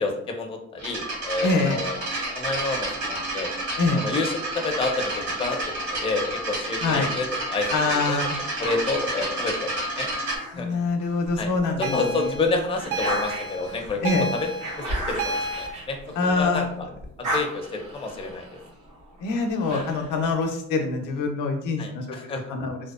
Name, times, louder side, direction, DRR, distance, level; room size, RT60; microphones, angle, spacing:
voice 1, 0.0-2.0 2.3-3.5 3.9-5.1 5.4-5.6 5.9-8.2 8.6-9.7 10.0-10.1 10.5-10.7 11.4-11.5 11.8-14.0 14.3-14.5 14.9-16.9 17.3-18.5 21.8-22.4, left 3 dB, 20° left, 3 dB, 0.4 m, -29 dB
sound 1, 0.8-10.4, right 1 dB, 65° right, 1.3 m, -30 dB
voice 2, 1.4-1.8 3.8-4.0 6.8-7.1 7.7-8.4 10.5-12.3 14.0-14.3 16.2-16.7 17.2-17.3 19.2-22.8, left 3 dB, 85° left, 3 dB, 0.6 m, -25 dB
sound 2, 8.6-11.3 11.8-16.6 16.9-20.2, right 1 dB, 90° right, 1.1 m, -35 dB
sound 3, 11.8-15.7, right 2 dB, 50° right, 0.5 m, -31 dB
2.6 x 2.1 x 2.3 m, 0.73 s
cardioid pair, 90°, 30 cm